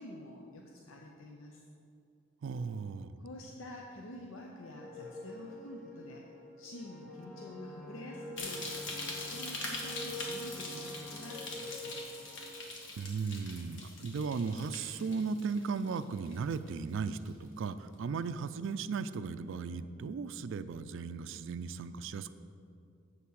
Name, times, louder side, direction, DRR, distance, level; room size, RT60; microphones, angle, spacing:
voice 1, 0.0-1.6 3.2-6.3 6.6-12.2, left 1 dB, 80° left, 0 dB, 0.7 m, -48 dB
voice 2, 2.4-3.1 13.0-22.3, right 5 dB, 65° right, 13 dB, 0.4 m, -36 dB
sound 1, 4.5-12.7, left 1 dB, 40° left, 1.3 m, -47 dB
Wind instrument woodwind instrument, 7.0-11.5, equal, ahead, 0.7 m, -52 dB
sound 2, 8.4-16.7 17.0-17.4 17.9-18.0, left 2 dB, 65° left, 1.5 m, -43 dB
8.1 x 5.8 x 6.3 m, 2.5 s
head